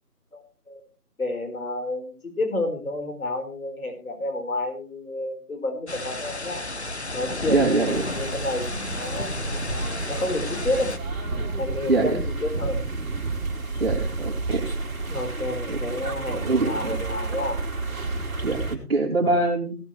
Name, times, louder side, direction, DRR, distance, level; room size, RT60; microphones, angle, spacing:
voice 1, 0.3-0.8 1.2-6.6 7.1-9.7 10.1-10.9 11.3-12.8 15.1-17.6 19.2-19.4, left 2 dB, 60° left, 4 dB, 4.6 m, -30 dB
sound 1, 5.9-11.0, left 2 dB, 45° left, 0.9 m, -32 dB
voice 2, 7.5-8.0 11.9-12.2 13.8-14.7 15.7-15.8 16.3-17.0 18.4-19.8, right 3 dB, 40° right, -1 dB, 3.2 m, -24 dB
sound 2, 7.9-18.8, right 3 dB, 60° right, 2.8 m, -30 dB
17.0 x 11.5 x 3.2 m, 0.31 s
figure-of-eight pair, 180°, 47 cm